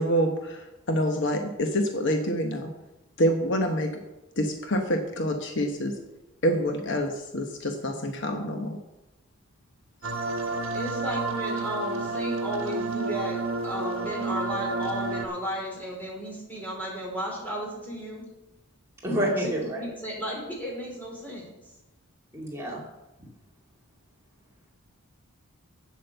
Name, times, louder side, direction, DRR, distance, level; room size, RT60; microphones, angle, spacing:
voice 1, 0.0-2.7 3.2-3.9 4.4-5.9 6.4-8.8, equal, 50° left, 4 dB, 1.0 m, -26 dB
sound 1, 10.0-15.3, right 3 dB, 65° right, 1.4 m, -30 dB
voice 2, 10.7-18.3 19.4-21.5, equal, 10° left, -3 dB, 3.3 m, -34 dB
voice 3, 19.0-19.8 22.3-22.8, equal, 10° right, -4 dB, 2.4 m, -28 dB
8.6 x 7.9 x 6.9 m, 0.95 s
head